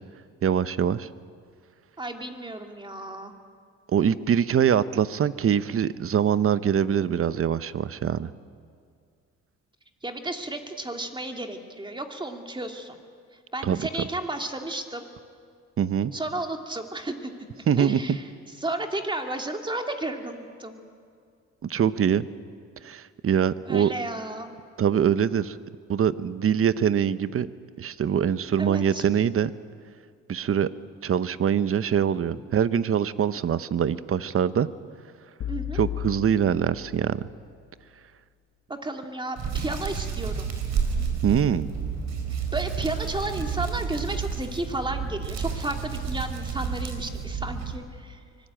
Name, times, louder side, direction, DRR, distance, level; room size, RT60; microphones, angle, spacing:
voice 1, 0.4-1.1 3.9-8.3 13.6-13.8 15.8-16.1 17.7-18.2 21.7-22.3 22.8-23.9 24.8-25.6 25.9-27.5 27.8-29.5 30.3-30.7 31.0-34.7 35.7-37.2 41.2-41.7, right 8 dB, 45° right, 15 dB, 0.9 m, -23 dB
voice 2, 2.0-3.3 10.0-13.0 13.5-15.1 16.1-18.2 18.6-20.8 23.6-24.5 28.6-29.1 35.5-35.8 38.7-40.5 42.5-48.2, right 2 dB, 15° right, 4 dB, 2.6 m, -33 dB
sound 1, 35.4-37.5, left 12 dB, 65° left, 1.5 m, -35 dB
Hands, 39.4-47.8, right 6 dB, 65° right, 4.6 m, -30 dB
24.5 x 19.5 x 9.0 m, 2.2 s
cardioid pair, 90°, 30 cm